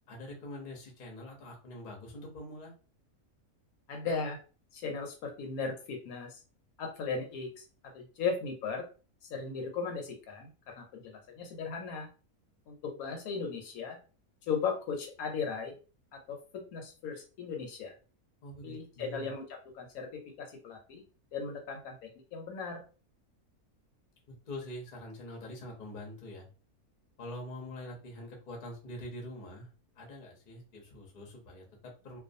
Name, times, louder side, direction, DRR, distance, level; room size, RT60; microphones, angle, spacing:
voice 1, 0.1-2.7 18.4-19.3 24.3-26.5 27.2-32.2, left 1 dB, 45° left, -1 dB, 0.7 m, -45 dB
voice 2, 3.9-4.4 4.7-6.4 6.8-7.6 7.9-8.8 9.3-12.1 12.7-14.0 14.5-15.7 16.1-16.4 16.7-17.9 18.6-19.4 19.7-21.0 21.3-22.8, left 5 dB, 75° left, 3 dB, 1.0 m, -37 dB
2.5 x 2.3 x 2.5 m, 0.35 s
omnidirectional pair, 1.6 m